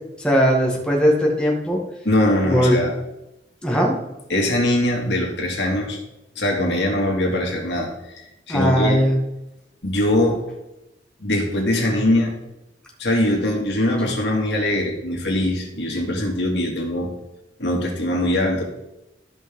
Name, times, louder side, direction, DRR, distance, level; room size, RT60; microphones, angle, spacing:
voice 1, 0.2-1.8 2.5-2.8 3.6-4.0 8.5-9.2, equal, 5° left, -2 dB, 1.7 m, -18 dB
voice 2, 2.0-2.9 4.3-6.0 6.4-9.0 9.8-10.4 11.2-12.3 13.0-17.1 17.6-18.6, left 1 dB, 85° left, 0 dB, 2.3 m, -22 dB
14.0 x 5.4 x 3.7 m, 0.91 s
head